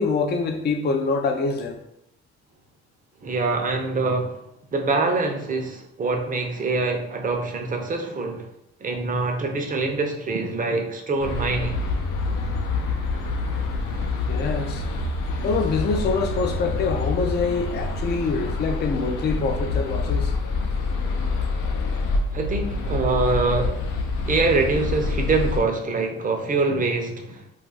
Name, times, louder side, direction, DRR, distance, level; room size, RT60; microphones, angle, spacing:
voice 1, 0.0-1.8 14.3-14.8 15.4-20.3, left 4 dB, 35° left, 0.4 m, -25 dB
voice 2, 3.2-4.4 4.7-8.5 8.8-11.8 22.3-23.8 24.3-27.4, right 3 dB, 25° right, 0.6 m, -24 dB
sound 1, 11.2-25.6, left 3 dB, 85° left, 0.6 m, -26 dB
2.4 x 2.3 x 3.9 m
cardioid pair, 90°, 30 cm